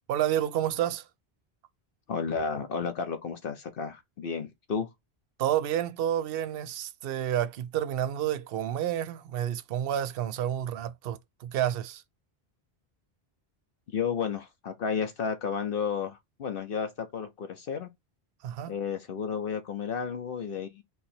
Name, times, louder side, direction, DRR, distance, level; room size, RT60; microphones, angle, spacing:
voice 1, 0.1-1.0 5.4-12.0 18.4-18.7, right 11 dB, 70° right, 0.7 m, -30 dB
voice 2, 2.1-4.9 13.9-17.9 18.7-20.8, left 6 dB, 65° left, 0.9 m, -32 dB
3.9 x 2.9 x 4.2 m
omnidirectional pair, 1.1 m